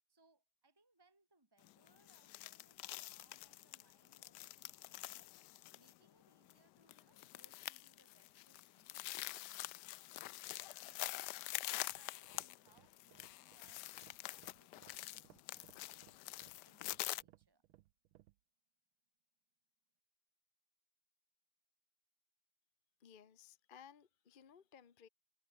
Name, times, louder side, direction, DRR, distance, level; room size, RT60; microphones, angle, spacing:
voice 1, 0.1-9.5 10.0-10.5 10.8-11.1 11.3-17.6, right 3 dB, 10° right, 3.2 m, -74 dB
sound 1, 1.6-17.2, left 17 dB, 75° left, 1.0 m, -46 dB
sound 2, 11.8-18.4, right 15 dB, 85° right, 1.5 m, -66 dB
voice 2, 23.0-25.1, left 8 dB, 40° left, 0.7 m, -60 dB
omnidirectional pair, 2.2 m